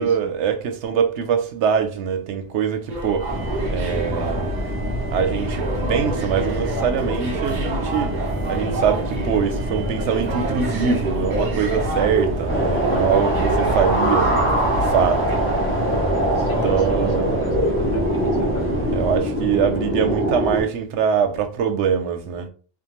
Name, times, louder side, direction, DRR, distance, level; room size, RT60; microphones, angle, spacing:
voice 1, 0.0-3.3 3.7-4.5 5.1-8.1 8.5-14.4 14.8-15.2 16.6-17.4 18.9-22.5, right 7 dB, 85° right, 0.9 m, -23 dB
sound 1, 2.9-15.4, right 2 dB, 50° right, 0.7 m, -29 dB
sound 2, 3.3-19.2, equal, 15° right, 0.4 m, -27 dB
sound 3, 12.5-20.6, right 1 dB, 15° left, 0.8 m, -22 dB
voice 2, 16.4-18.7, left 2 dB, 60° left, 0.8 m, -36 dB
2.6 x 2.3 x 2.9 m
omnidirectional pair, 1.1 m